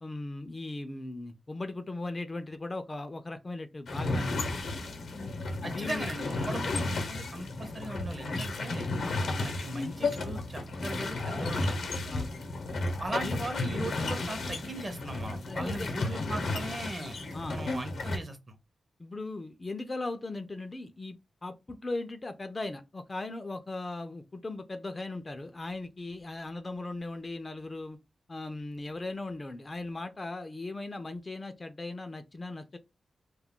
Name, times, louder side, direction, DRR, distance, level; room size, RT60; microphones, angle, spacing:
voice 1, 0.0-4.6 5.1-5.3 5.6-6.1 9.0-9.2 12.1-12.3 13.1-13.5 15.5-16.2 17.3-17.6 19.0-28.0 28.3-32.8, left 2 dB, 30° left, 0.4 m, -38 dB
sound 1, 3.9-18.2, left 2 dB, 80° left, 0.7 m, -33 dB
voice 2, 5.6-8.9 9.4-11.8 13.0-17.2 17.5-18.5, right 1 dB, 30° right, 0.6 m, -39 dB
2.3 x 2.1 x 3.6 m
wide cardioid pair, 110°, 0 cm